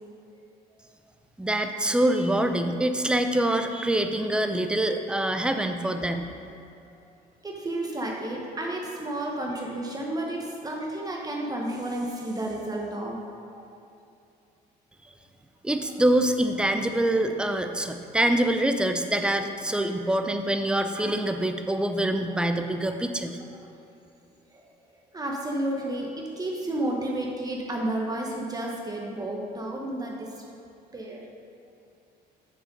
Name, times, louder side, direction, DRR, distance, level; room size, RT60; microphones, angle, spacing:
voice 1, 1.4-6.3 15.6-23.4, right 1 dB, 5° right, 7 dB, 0.5 m, -25 dB
voice 2, 7.4-13.7 24.5-24.7 25.1-30.5 30.9-31.2, right 1 dB, 20° right, -1 dB, 0.9 m, -32 dB
7.0 x 4.9 x 5.4 m, 2.6 s
cardioid pair, 110°, 17 cm